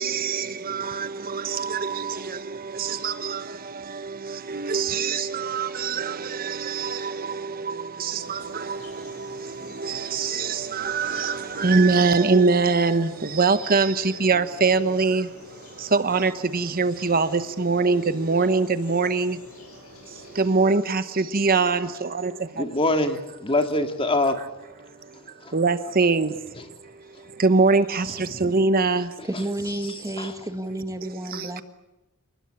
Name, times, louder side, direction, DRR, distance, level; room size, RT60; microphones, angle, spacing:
voice 1, 0.0-19.4 20.1-22.6 24.8-25.2 25.5-29.2 31.0-31.5, right 4 dB, 45° right, 1.1 m, -24 dB
sound 1, 8.2-20.5, left 2 dB, 85° left, 7.7 m, -47 dB
voice 2, 22.5-24.4 25.4-25.5 28.3-28.5 30.2-30.3, left 2 dB, 25° left, 2.1 m, -24 dB
voice 3, 29.2-31.6, right 1 dB, 15° right, 1.6 m, -31 dB
28.5 x 20.0 x 8.8 m
head